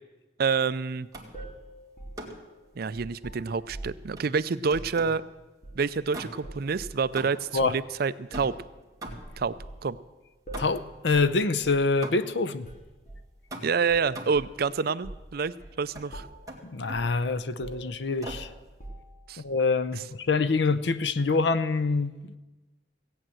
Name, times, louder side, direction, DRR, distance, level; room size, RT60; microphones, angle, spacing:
voice 1, 0.4-1.1 2.8-5.2 5.7-8.5 9.4-9.5 9.8-10.0 13.6-16.3 19.3-19.4, right 5 dB, 60° right, 15 dB, 0.5 m, -28 dB
sound 1, 1.1-1.5 2.2-2.5 4.2-5.3 6.1-6.6 7.2-7.6 8.3-9.5 10.5-11.0 12.0-12.5 13.5-14.5 15.9-16.1 16.5-17.1 18.2-18.6, right 1 dB, 20° right, 1.9 m, -42 dB
sound 2, 1.3-4.1 4.6-5.0 5.6-6.0 6.4-7.0 7.6-7.7 8.3-8.6 9.0-9.8 10.5-10.8 11.1-11.3 11.6-11.9 12.6-13.3 13.9-14.6 15.0-15.3 15.6-15.8 16.1-16.5 16.9-17.2 17.6-19.3, right 1 dB, 45° left, 2.6 m, -43 dB
voice 2, 10.6-12.7 16.6-18.5 19.4-22.2, left 3 dB, 75° left, 13 dB, 0.7 m, -25 dB
16.0 x 8.8 x 7.7 m, 1.2 s
head